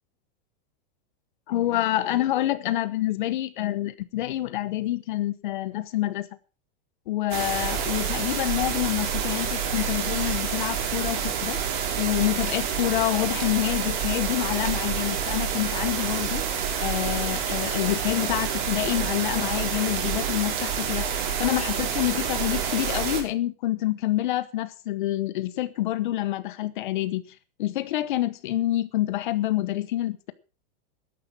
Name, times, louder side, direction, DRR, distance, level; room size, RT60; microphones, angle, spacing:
voice 1, 1.5-6.3 7.1-11.6 12.0-16.4 16.8-21.1 21.4-27.2 27.6-30.3, left 14 dB, 55° left, 1.1 m, -27 dB
sound 1, 7.3-23.2, right 7 dB, 55° right, 5.0 m, -28 dB
13.5 x 11.0 x 6.0 m
supercardioid pair, 180°, 29 cm